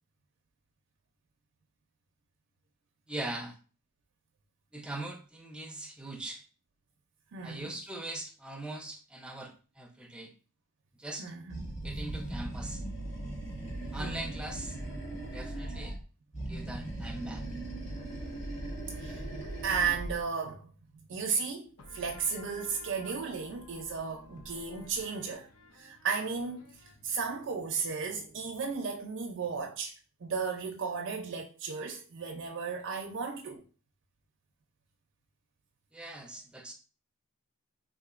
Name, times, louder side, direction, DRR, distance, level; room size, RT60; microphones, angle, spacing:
voice 1, 3.1-3.6 4.7-6.4 7.4-10.3 11.0-11.3 11.8-12.8 13.9-14.8 15.2-16.0 16.4-17.4 35.9-36.7, right 1 dB, 5° right, 0.5 m, -41 dB
voice 2, 7.3-7.7 11.2-11.7 14.0-14.2 18.6-20.7 20.9-21.7 21.9-25.5 25.7-26.7 27.0-29.9 30.2-33.6, right 5 dB, 60° right, 0.4 m, -34 dB
Animal, 11.5-16.0 16.3-20.2, right 1 dB, 30° left, 1.5 m, -38 dB
sound 1, 21.8-29.1, left 2 dB, 80° left, 0.7 m, -54 dB
3.7 x 2.8 x 2.4 m
head